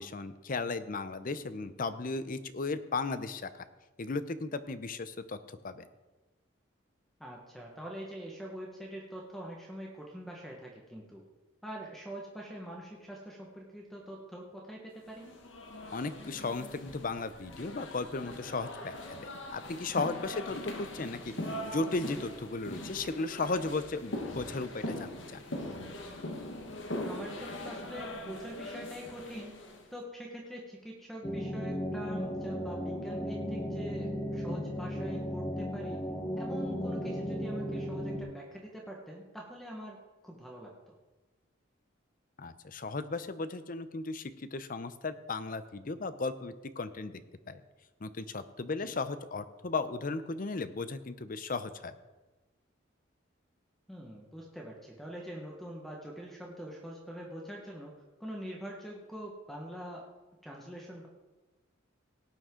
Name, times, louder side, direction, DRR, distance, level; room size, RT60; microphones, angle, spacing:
voice 1, 0.0-3.6 4.0-5.9 15.9-25.4 42.4-47.2 47.5-47.6 48.0-51.9, left 3 dB, 45° left, 12 dB, 0.6 m, -36 dB
voice 2, 7.2-11.2 11.6-15.3 20.5-20.6 27.0-29.5 29.9-36.0 36.4-40.7 48.8-48.9 53.9-57.9 58.2-60.0 60.4-61.1, equal, ahead, -2 dB, 1.3 m, -44 dB
sound 1, 15.1-29.9, left 1 dB, 70° left, 1.5 m, -41 dB
sound 2, 31.2-38.2, equal, 20° left, 1.3 m, -35 dB
17.5 x 8.9 x 3.8 m, 1.2 s
head